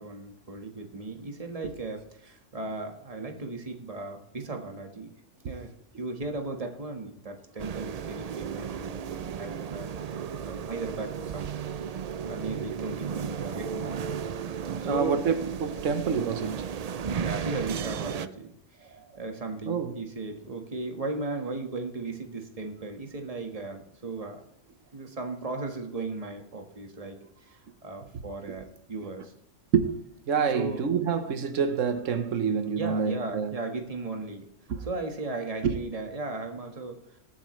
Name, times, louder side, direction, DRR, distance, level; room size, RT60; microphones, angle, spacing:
voice 1, 0.0-5.1 5.5-11.5 11.9-14.3 14.8-15.2 17.1-18.5 18.8-24.4 24.9-29.3 30.5-30.9 32.8-34.5 34.8-37.2, right 3 dB, 30° right, 1.6 m, -36 dB
sound 1, 7.6-18.3, right 7 dB, 60° right, 0.4 m, -34 dB
voice 2, 14.8-16.7 18.9-19.0 19.7-19.9 29.7-29.9 30.3-33.5 34.7-34.8 35.6-35.8, right 6 dB, 85° right, 1.4 m, -27 dB
20.5 x 8.6 x 3.2 m
omnidirectional pair, 1.3 m